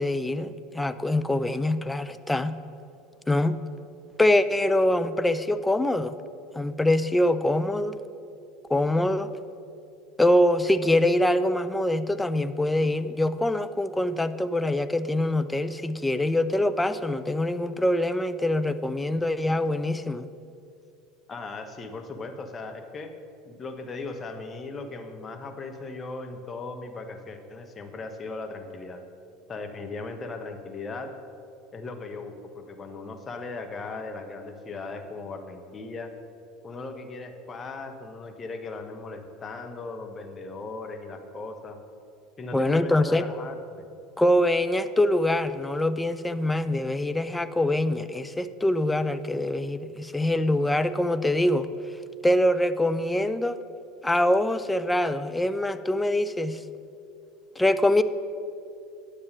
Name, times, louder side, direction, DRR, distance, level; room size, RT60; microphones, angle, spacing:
voice 1, 0.0-2.6 3.3-3.6 4.2-6.2 6.5-8.0 8.7-9.3 10.2-20.3 42.5-43.2 44.2-51.7 52.2-53.6 54.0-56.6 57.6-58.0, left 1 dB, 10° left, 11 dB, 0.5 m, -24 dB
voice 2, 21.3-23.1 23.4-29.0 29.5-31.1 31.7-36.1 36.6-41.8 42.4-43.9, left 3 dB, 30° left, 5 dB, 1.2 m, -38 dB
9.6 x 7.0 x 6.6 m, 2.6 s
hypercardioid pair, 75°, 0 cm